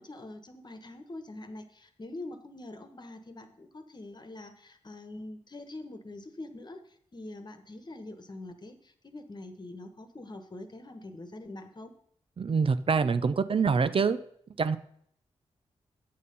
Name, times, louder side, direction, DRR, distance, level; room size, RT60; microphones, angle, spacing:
voice 1, 0.0-11.9, left 2 dB, 35° left, 8 dB, 1.3 m, -44 dB
voice 2, 12.4-14.2 14.6-14.8, right 5 dB, 50° right, 12 dB, 0.5 m, -25 dB
8.5 x 6.5 x 5.4 m, 0.66 s
cardioid pair, 55°, 12 cm